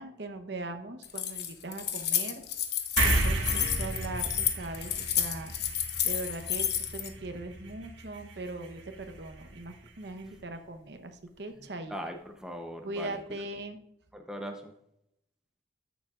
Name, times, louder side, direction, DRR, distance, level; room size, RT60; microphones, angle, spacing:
voice 1, 0.0-2.4 2.9-5.7 6.0-6.7 6.9-11.9 12.8-13.8, right 2 dB, 65° right, 7 dB, 0.9 m, -40 dB
Keys jangling, 1.0-7.1, left 10 dB, 60° left, 1.0 m, -30 dB
sound 1, 3.0-9.8, right 2 dB, 90° right, 1.6 m, -34 dB
voice 2, 11.6-13.2 14.1-14.7, equal, 5° right, 3 dB, 0.7 m, -40 dB
13.5 x 7.1 x 2.5 m, 0.78 s
head